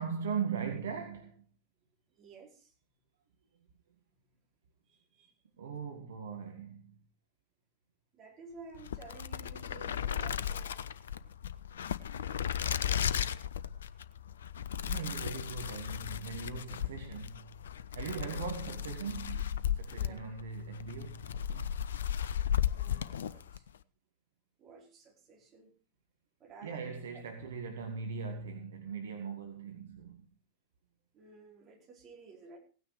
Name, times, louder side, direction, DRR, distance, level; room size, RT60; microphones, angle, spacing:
voice 1, 0.0-1.4 5.6-6.9 14.8-17.6 17.9-21.7 26.6-30.2, right 6 dB, 65° right, 1.9 m, -40 dB
voice 2, 2.1-2.7 4.9-5.4 8.1-10.9 18.0-18.5 19.9-20.2 22.7-23.7 24.6-25.7 26.4-27.2 31.1-32.6, right 4 dB, 30° right, 4.9 m, -54 dB
sound 1, 8.7-23.7, left 9 dB, 65° left, 0.6 m, -35 dB
17.0 x 9.6 x 4.9 m
figure-of-eight pair, 90°, 0 cm